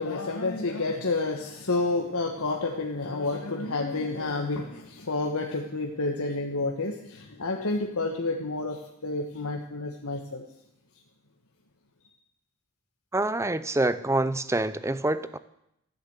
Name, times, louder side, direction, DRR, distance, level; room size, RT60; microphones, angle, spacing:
voice 1, 0.0-10.4 10.9-11.0, left 3 dB, 75° left, 1 dB, 1.5 m, -30 dB
voice 2, 13.1-15.4, right 2 dB, 15° right, 14 dB, 0.6 m, -26 dB
15.0 x 10.5 x 8.2 m, 0.78 s
head